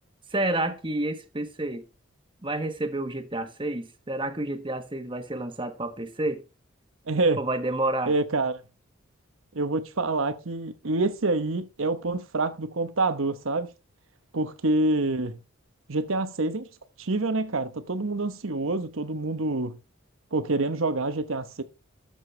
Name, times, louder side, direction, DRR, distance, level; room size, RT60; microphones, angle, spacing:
voice 1, 0.3-1.8 2.4-6.4 7.4-8.1, right 2 dB, 25° right, 1.2 m, -29 dB
voice 2, 7.1-7.4 8.1-8.6 9.5-13.7 14.3-15.4 15.9-16.7 17.0-19.8 20.3-21.6, right 2 dB, 75° right, 1.0 m, -27 dB
12.5 x 6.9 x 3.3 m
head